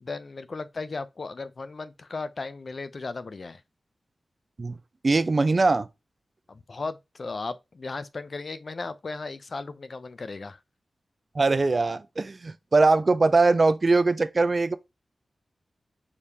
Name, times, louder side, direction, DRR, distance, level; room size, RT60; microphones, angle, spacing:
voice 1, 0.0-3.6 6.5-10.6, left 3 dB, 60° left, 0.5 m, -36 dB
voice 2, 5.0-5.9 11.3-14.8, right 3 dB, 50° right, 0.5 m, -21 dB
4.9 x 3.3 x 2.8 m
cardioid pair, 45°, 0 cm